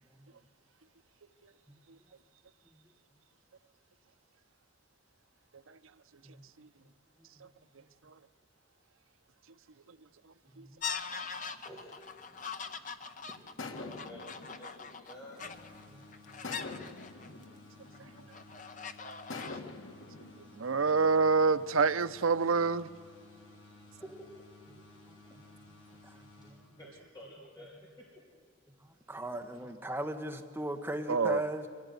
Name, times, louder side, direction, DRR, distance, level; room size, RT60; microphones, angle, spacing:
sound 1, 10.8-17.4 17.9-19.6, left 6 dB, 40° left, 0.9 m, -42 dB
voice 1, 11.1-15.5 15.9-16.0 23.2-24.1 25.3-25.4 26.8-28.1 29.3-29.4, equal, 20° left, 3.0 m, -53 dB
sound 2, 13.6-15.8 16.4-18.6 19.3-21.6, left 3 dB, 80° left, 1.5 m, -46 dB
sound 3, 15.4-27.1, left 2 dB, 55° left, 5.8 m, -56 dB
voice 2, 20.6-22.9 31.1-31.4, right 4 dB, 90° right, 0.7 m, -26 dB
voice 3, 29.1-31.7, right 1 dB, 10° right, 1.2 m, -37 dB
24.0 x 16.0 x 9.5 m
head